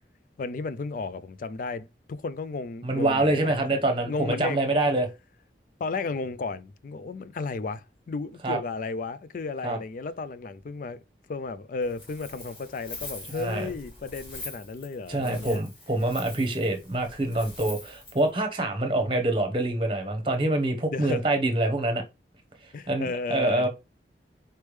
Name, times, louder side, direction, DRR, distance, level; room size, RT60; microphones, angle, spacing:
voice 1, 0.4-3.8 4.1-5.0 5.8-11.0 11.3-15.6 20.9-21.3 22.7-23.7, left 4 dB, 50° left, 0.3 m, -34 dB
voice 2, 2.8-5.1 8.4-8.6 9.6-9.8 13.3-13.7 15.1-22.0 22.9-23.7, right 2 dB, 30° right, 0.9 m, -25 dB
Wind, 11.8-18.3, left 2 dB, 30° left, 1.7 m, -43 dB
4.3 x 3.4 x 3.2 m
head